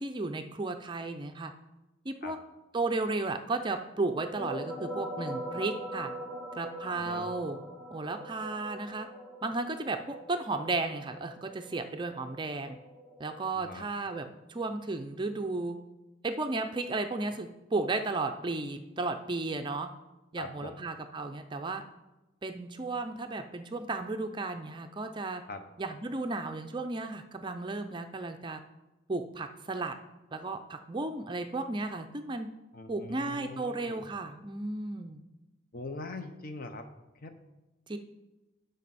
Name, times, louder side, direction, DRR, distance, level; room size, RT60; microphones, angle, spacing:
voice 1, 0.0-1.5 2.0-2.4 2.7-6.1 6.6-7.6 7.9-9.1 9.4-12.8 13.2-15.8 16.2-19.9 20.3-21.8 22.4-25.4 25.8-28.6 29.1-29.9 30.3-32.5 32.9-35.2 37.9-38.0, right 3 dB, 25° right, 7 dB, 0.5 m, -34 dB
sound 1, 4.0-13.4, equal, 5° left, 1.5 m, -42 dB
voice 2, 7.0-7.3 13.5-13.9 20.4-20.8 25.5-25.6 32.7-34.0 35.7-36.9 37.2-37.3, left 2 dB, 45° left, 7 dB, 0.8 m, -42 dB
12.0 x 5.3 x 4.1 m, 1.0 s
head